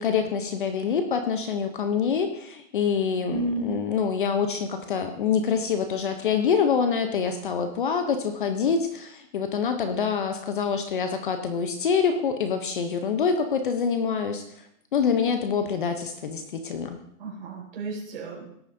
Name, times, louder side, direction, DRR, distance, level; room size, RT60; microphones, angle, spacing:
voice 1, 0.0-14.4 14.9-17.0, left 6 dB, 40° left, 7 dB, 0.7 m, -26 dB
voice 2, 3.3-3.9 17.2-18.5, right 2 dB, 40° right, -2 dB, 4.7 m, -32 dB
17.5 x 8.8 x 2.6 m, 0.74 s
hypercardioid pair, 170°, 41 cm